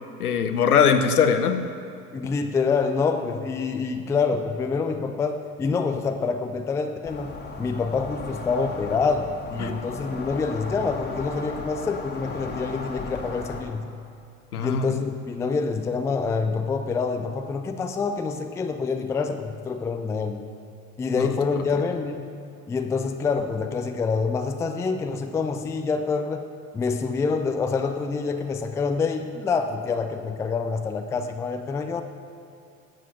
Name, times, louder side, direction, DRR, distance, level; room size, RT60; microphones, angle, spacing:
voice 1, 0.2-1.6 9.6-9.7 14.5-14.9 21.2-21.3, left 7 dB, 75° left, 8 dB, 0.9 m, -21 dB
voice 2, 2.1-7.3 7.6-13.9 14.6-20.4 21.0-22.3 22.7-26.4 26.7-32.0, left 4 dB, 5° left, 7 dB, 0.4 m, -26 dB
sound 1, 7.0-13.6, left 3 dB, 20° left, 1.6 m, -36 dB
10.5 x 7.5 x 6.1 m, 2.6 s
figure-of-eight pair, 70°, 45 cm